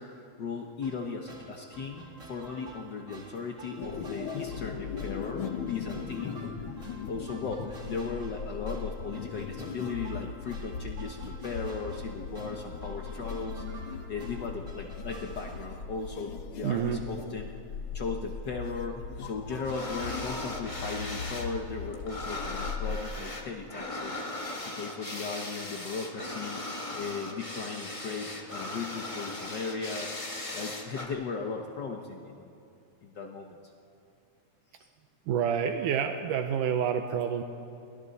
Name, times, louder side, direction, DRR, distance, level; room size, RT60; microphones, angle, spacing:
voice 1, 0.0-6.4 7.0-17.5 17.9-26.6 26.9-32.5 33.0-33.5 34.8-34.9, left 4 dB, 80° left, 2 dB, 0.9 m, -37 dB
sound 1, 0.8-15.6, right 3 dB, 25° right, 2.1 m, -50 dB
sound 2, 3.8-23.0, left 5 dB, 65° left, 1.3 m, -39 dB
voice 2, 16.6-17.0 35.3-37.4, right 8 dB, 80° right, 6 dB, 2.3 m, -28 dB
sound 3, 19.6-21.5 21.8-31.1, left 2 dB, 45° left, 0.4 m, -38 dB
30.0 x 23.5 x 4.2 m, 2.8 s
omnidirectional pair, 3.7 m